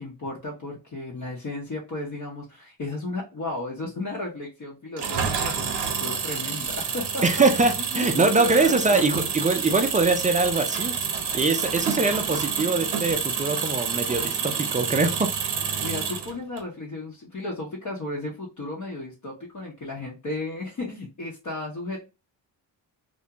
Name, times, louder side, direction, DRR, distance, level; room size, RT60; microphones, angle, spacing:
voice 1, 0.0-7.2 7.8-9.2 15.8-22.0, left 2 dB, 40° left, -3 dB, 0.8 m, -34 dB
Engine, 5.0-16.6, right 6 dB, 65° right, 0.8 m, -28 dB
voice 2, 7.2-10.9 11.3-15.3, right 3 dB, 20° right, 6 dB, 0.3 m, -23 dB
2.4 x 2.1 x 2.8 m, 0.28 s
cardioid pair, 110°, 45 cm